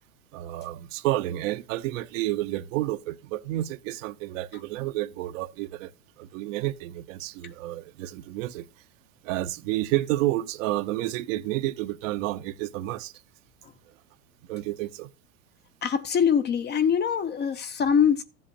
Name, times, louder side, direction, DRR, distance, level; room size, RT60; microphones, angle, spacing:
voice 1, 0.3-5.9 6.2-8.7 9.2-13.1 14.5-15.1, right 16 dB, 60° right, 0.9 m, -30 dB
voice 2, 15.8-18.2, left 7 dB, 25° left, 0.6 m, -23 dB
14.0 x 7.7 x 2.9 m
hypercardioid pair, 105°, 45 cm